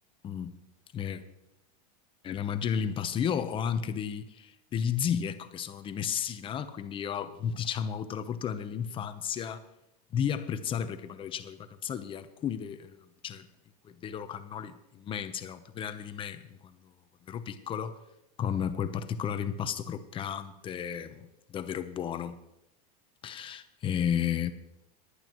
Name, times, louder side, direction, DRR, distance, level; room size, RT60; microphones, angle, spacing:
voice 1, 0.2-0.5 0.9-1.2 2.2-9.6 10.1-13.5 13.8-16.8 17.3-18.0 18.4-22.4 23.2-24.5, left 8 dB, 25° left, 11 dB, 0.8 m, -33 dB
19.0 x 11.5 x 3.0 m, 0.88 s
supercardioid pair, 145°, 21 cm